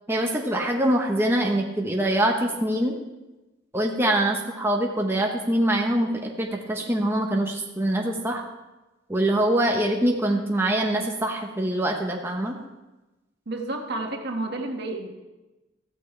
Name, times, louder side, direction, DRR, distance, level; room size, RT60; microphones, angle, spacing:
voice 1, 0.1-3.0 3.7-8.4 9.1-12.6, right 1 dB, 15° right, 0 dB, 1.0 m, -24 dB
voice 2, 13.5-15.1, right 2 dB, 60° right, 2 dB, 1.7 m, -30 dB
14.5 x 14.0 x 3.4 m, 1.1 s
head